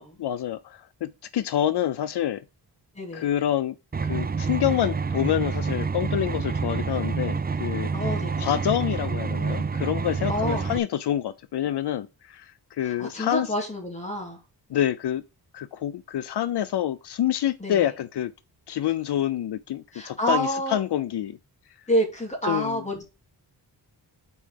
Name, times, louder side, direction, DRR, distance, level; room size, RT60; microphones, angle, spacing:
voice 1, 0.2-2.4 3.1-3.8 4.0-7.9 8.4-13.5 14.7-15.2 15.5-18.3 18.7-21.4 22.4-22.8, left 11 dB, 75° left, 0.5 m, -27 dB
voice 2, 2.9-3.3 7.9-8.5 10.3-10.8 13.0-14.4 17.6-17.8 19.9-20.8 21.9-23.0, equal, 15° left, 2.6 m, -28 dB
sound 1, 3.9-10.8, right 5 dB, 25° right, 0.4 m, -28 dB
5.6 x 4.6 x 6.4 m
wide cardioid pair, 135°, 40 cm